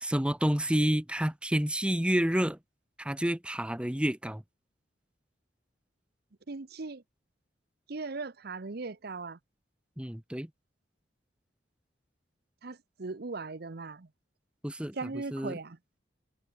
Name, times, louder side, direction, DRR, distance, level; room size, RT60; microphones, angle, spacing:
voice 1, 0.0-2.6 3.0-4.4 10.0-10.5 14.6-15.6, equal, 5° right, 0.9 m, -29 dB
voice 2, 6.5-7.0 7.9-9.4 12.6-14.1 14.9-15.8, right 3 dB, 55° right, 0.8 m, -38 dB
head